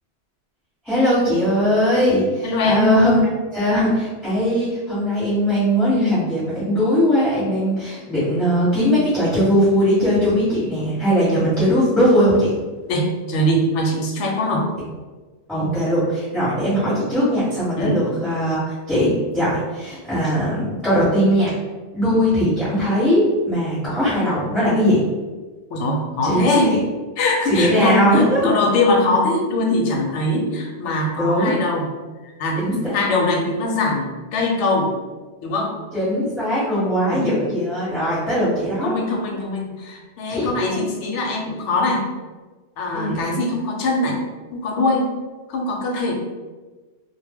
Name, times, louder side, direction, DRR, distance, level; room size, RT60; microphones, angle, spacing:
voice 1, 0.8-3.2 3.5-12.5 15.5-18.6 18.9-21.5 21.9-25.0 26.2-26.8 27.5-28.5 31.2-31.6 32.6-33.1 35.9-38.9 40.3-40.8 42.9-43.2, equal, ahead, -12 dB, 0.9 m, -19 dB
voice 2, 2.4-3.0 12.9-14.7 17.8-18.0 25.7-26.7 27.2-31.9 32.4-32.6 32.9-34.9 35.4-35.8 37.1-37.3 38.8-42.1 42.8-44.2 44.5-45.1 45.5-46.1, left 2 dB, 90° left, 0 dB, 0.9 m, -22 dB
2.1 x 2.1 x 3.4 m, 1.3 s
omnidirectional pair, 1.2 m